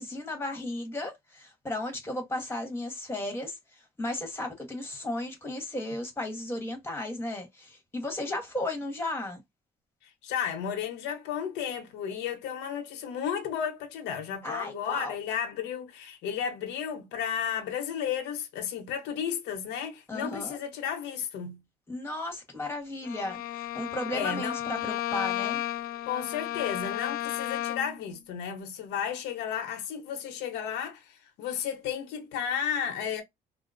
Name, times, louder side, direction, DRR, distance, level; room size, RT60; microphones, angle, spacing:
voice 1, 0.0-9.4 14.4-15.2 20.1-20.6 21.9-25.6, left 1 dB, 15° left, 1.2 m, -35 dB
voice 2, 10.2-21.6 24.1-24.6 26.0-33.2, left 8 dB, 90° left, 0.8 m, -33 dB
Bowed string instrument, 23.0-28.0, left 13 dB, 60° left, 0.4 m, -33 dB
3.6 x 2.0 x 2.5 m
cardioid pair, 110°, 17 cm